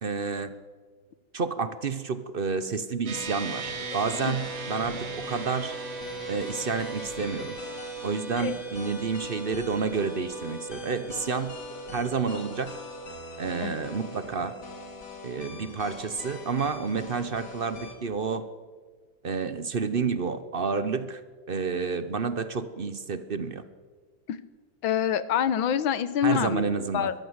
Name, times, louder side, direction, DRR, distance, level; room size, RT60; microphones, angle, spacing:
voice 1, 0.0-0.5 1.3-5.8 6.3-7.6 8.0-11.5 11.9-12.8 13.4-14.5 15.2-18.5 19.2-21.2 21.5-23.6 26.2-27.1, right 5 dB, 50° right, 12 dB, 0.7 m, -30 dB
sound 1, 3.1-17.9, left 4 dB, 55° left, 2.9 m, -43 dB
sound 2, 3.1-16.7, right 5 dB, 85° right, 2.5 m, -40 dB
voice 2, 24.8-26.7 26.9-27.1, left 9 dB, 80° left, 14 dB, 1.7 m, -26 dB
22.5 x 14.5 x 8.1 m, 1.5 s
omnidirectional pair, 2.2 m